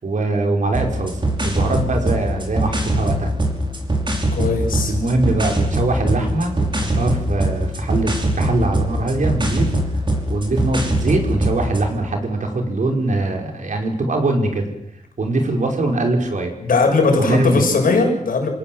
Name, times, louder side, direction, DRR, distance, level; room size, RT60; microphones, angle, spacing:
voice 1, 0.0-3.3 4.9-9.7 10.3-14.7 15.2-16.5 17.2-17.7, right 2 dB, 65° right, 3 dB, 5.6 m, -22 dB
sound 1, 0.7-11.9, right 1 dB, 35° right, 5.4 m, -22 dB
voice 2, 4.3-4.9 16.6-18.5, left 3 dB, 90° left, 2 dB, 6.8 m, -18 dB
28.0 x 17.5 x 8.0 m, 0.74 s
wide cardioid pair, 110°, 14 cm